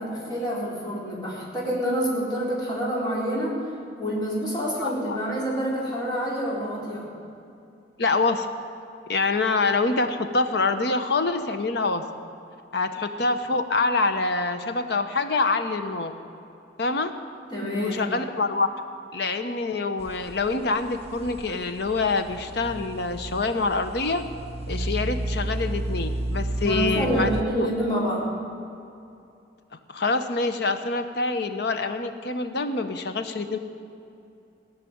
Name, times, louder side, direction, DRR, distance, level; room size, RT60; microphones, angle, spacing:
voice 1, 0.0-3.6 4.0-7.1 17.5-18.0 26.6-28.3, equal, 25° left, -7 dB, 4.1 m, -27 dB
voice 2, 4.8-5.2 8.0-8.5 9.1-12.0 12.7-16.1 16.8-17.1 17.7-18.7 19.1-24.2 24.7-27.7 29.9-33.6, left 3 dB, 65° left, 8 dB, 0.9 m, -25 dB
sound 1, 20.0-27.4, right 1 dB, 35° right, 0.6 m, -32 dB
17.5 x 5.9 x 9.3 m, 2.6 s
head